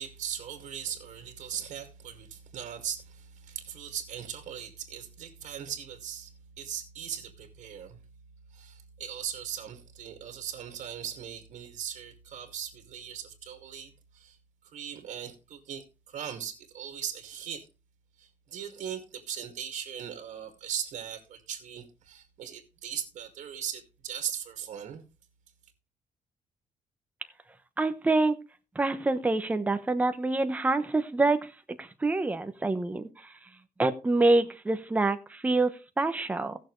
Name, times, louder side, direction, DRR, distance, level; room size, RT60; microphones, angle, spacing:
voice 1, 0.0-6.3 6.6-8.0 8.5-14.4 14.7-17.6 18.2-25.0, right 9 dB, 65° right, 2.2 m, -39 dB
voice 2, 27.8-28.4 28.8-31.4 31.8-33.1 33.8-36.6, right 2 dB, 10° right, 0.9 m, -26 dB
18.0 x 6.6 x 3.2 m
cardioid pair, 175°, 13 cm